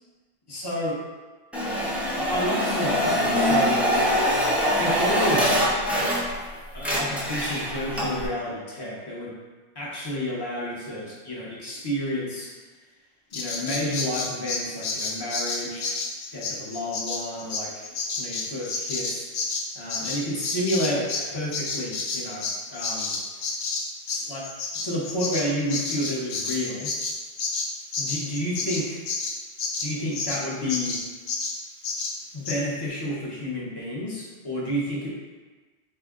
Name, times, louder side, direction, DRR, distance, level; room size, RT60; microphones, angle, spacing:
voice 1, 0.5-1.0 2.2-3.8 4.8-5.7 6.7-9.4 9.7-12.5 13.3-16.0 16.3-17.9 18.2-19.3 19.7-23.2 24.1-24.5 24.8-26.9 28.0-29.0 29.8-31.0 32.3-35.1, equal, 25° left, -5 dB, 0.7 m, -30 dB
sound 1, 1.5-6.5 6.7-8.3, equal, ahead, 0.4 m, -24 dB
Bird vocalization bird call bird song, 13.3-21.3 21.5-30.4 30.7-31.0 31.3-31.5 31.8-32.1 32.4-32.6, left 4 dB, 70° left, 0.8 m, -30 dB
4.3 x 2.1 x 3.6 m, 1.3 s
omnidirectional pair, 1.2 m